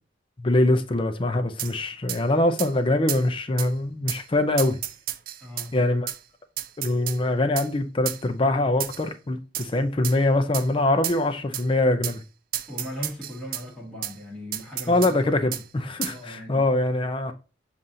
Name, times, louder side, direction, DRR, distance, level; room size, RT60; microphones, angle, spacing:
voice 1, 0.4-4.8 5.7-6.1 6.8-12.2 14.9-17.3, left 2 dB, 30° left, 0.5 m, -23 dB
sound 1, 1.6-1.7 2.1-2.2 2.6-2.7 3.1-3.2 3.6-3.7 4.1-4.2 4.6-5.7 6.1-6.2 6.6-7.2 7.6-7.7 8.1-8.2 8.8-9.1 9.5-9.7 10.0-10.2 10.5-10.7 11.0-11.2 11.5-11.7 12.0-12.2 12.5-13.6 14.0-14.1 14.5-15.1 15.5-15.6 16.0-16.2, right 12 dB, 50° right, 0.3 m, -31 dB
voice 2, 5.4-5.7 12.7-15.6 16.0-16.7, left 1 dB, 5° left, 1.2 m, -38 dB
7.1 x 2.5 x 2.7 m
head